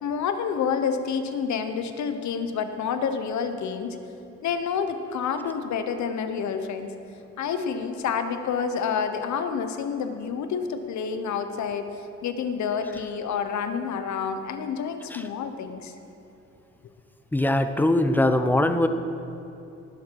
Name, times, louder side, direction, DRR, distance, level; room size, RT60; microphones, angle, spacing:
voice 1, 0.0-4.0 4.4-6.9 7.4-15.9, left 6 dB, 70° left, 8 dB, 1.1 m, -28 dB
voice 2, 17.3-18.9, left 1 dB, 5° left, 8 dB, 0.7 m, -21 dB
19.0 x 7.6 x 4.7 m, 2.8 s
cardioid pair, 90°, 30 cm